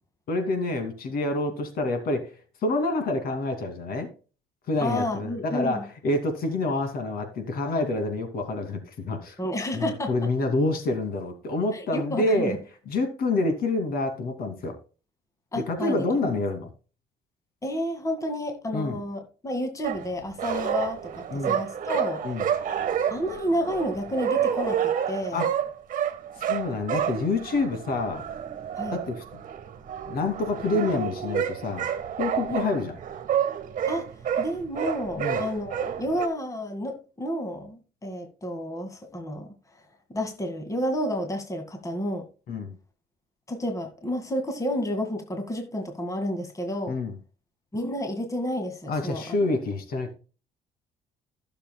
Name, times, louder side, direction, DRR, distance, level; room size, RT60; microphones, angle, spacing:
voice 1, 0.3-2.3 2.6-4.1 4.7-9.4 9.7-12.6 12.9-14.7 15.6-16.7 18.7-19.0 21.3-21.6 22.2-22.5 25.3-25.5 26.5-28.2 28.9-29.2 30.1-31.9 32.2-33.0 35.2-35.4 42.5-42.7 46.9-47.1 48.9-50.1, left 2 dB, 60° left, 2.5 m, -27 dB
voice 2, 4.8-5.8 9.4-10.3 11.7-12.6 15.5-16.0 17.6-22.2 23.1-25.4 28.8-29.0 32.5-32.7 33.9-34.1 34.4-39.5 40.1-42.2 43.5-47.0 47.7-49.3, equal, 20° left, 2.0 m, -30 dB
sound 1, 19.8-36.3, right 9 dB, 50° right, 1.5 m, -29 dB
15.0 x 6.9 x 2.3 m
cardioid pair, 110°, 17 cm